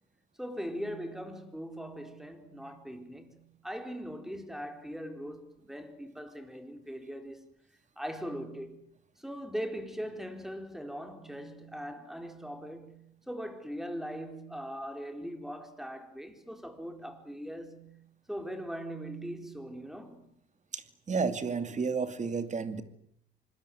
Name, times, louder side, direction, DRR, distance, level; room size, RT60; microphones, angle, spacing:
voice 1, 0.4-7.4 8.0-8.8 9.2-18.0 18.3-20.3, equal, ahead, 4.5 m, -40 dB
voice 2, 20.7-22.8, right 5 dB, 35° right, 2.7 m, -32 dB
26.0 x 21.0 x 9.5 m
cardioid pair, 90°, 20 cm